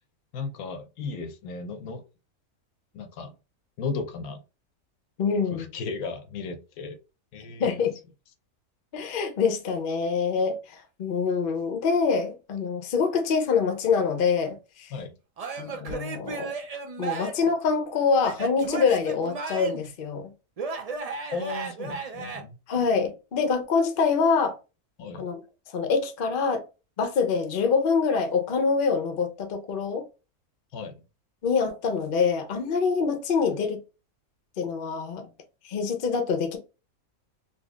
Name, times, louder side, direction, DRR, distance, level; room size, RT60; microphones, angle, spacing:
voice 1, 0.3-2.0 2.9-3.3 3.8-4.4 5.5-7.0 7.3-7.7 14.9-15.1 21.3-22.6 25.0-25.3 30.7-31.0, left 4 dB, 80° left, 1.1 m, -35 dB
voice 2, 5.2-5.7 7.6-7.9 8.9-14.9 15.6-16.5 17.0-20.3 22.7-24.6 25.2-25.4 25.7-26.6 27.0-30.1 31.4-33.8 34.6-35.3 35.6-36.6, left 5 dB, 50° left, 0.7 m, -25 dB
Male speech man speaking / Yell / Laughter, 15.4-17.5 18.2-19.9 20.6-22.4, right 4 dB, 80° right, 0.3 m, -34 dB
4.0 x 2.8 x 2.3 m
omnidirectional pair, 1.5 m